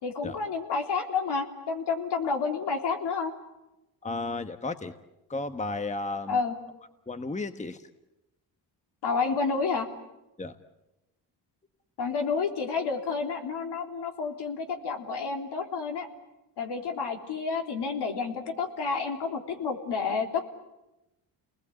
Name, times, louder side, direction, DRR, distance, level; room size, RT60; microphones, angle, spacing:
voice 1, 0.0-3.3 6.3-6.6 9.0-9.9 12.0-16.1 16.6-20.5, left 5 dB, 70° left, 3 dB, 3.6 m, -30 dB
voice 2, 4.0-4.9 5.3-6.4 7.1-7.8 10.4-10.5, left 3 dB, 15° left, 9 dB, 1.3 m, -33 dB
29.0 x 20.5 x 8.6 m, 0.97 s
cardioid pair, 90°, 41 cm